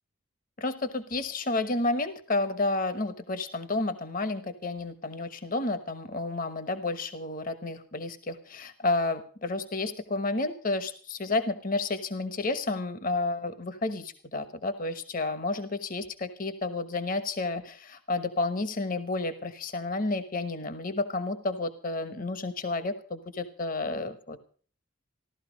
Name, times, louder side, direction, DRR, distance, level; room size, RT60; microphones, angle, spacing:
voice 1, 0.6-24.4, left 2 dB, 40° left, 11 dB, 1.1 m, -31 dB
15.5 x 12.5 x 5.1 m, 0.43 s
head